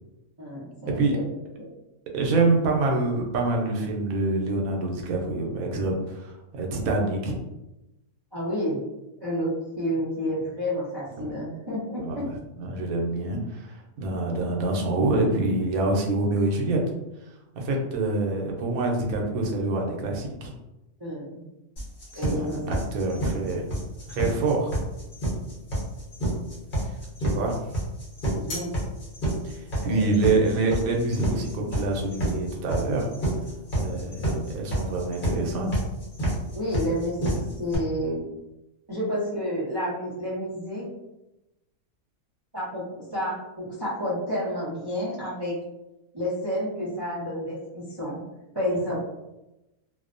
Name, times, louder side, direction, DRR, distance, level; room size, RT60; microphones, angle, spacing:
voice 1, 0.4-1.2 1.6-1.7 8.3-8.8 9.2-12.2 21.0-21.4 22.1-22.8 28.3-28.7 29.9-30.1 36.5-38.2 38.9-40.9 42.5-45.5 46.1-48.2 48.5-49.0, equal, 40° right, -9 dB, 0.3 m, -30 dB
voice 2, 2.1-7.4 11.2-11.3 12.0-12.2 12.6-16.8 17.6-20.5 22.1-23.7 24.1-24.7 26.8-26.9 27.2-27.7 29.4-33.1 33.7-35.7, right 2 dB, 85° right, 0 dB, 1.0 m, -26 dB
sound 1, 21.8-37.8, right 1 dB, 45° left, 0.9 m, -28 dB
2.5 x 2.1 x 2.5 m, 0.95 s
omnidirectional pair, 1.5 m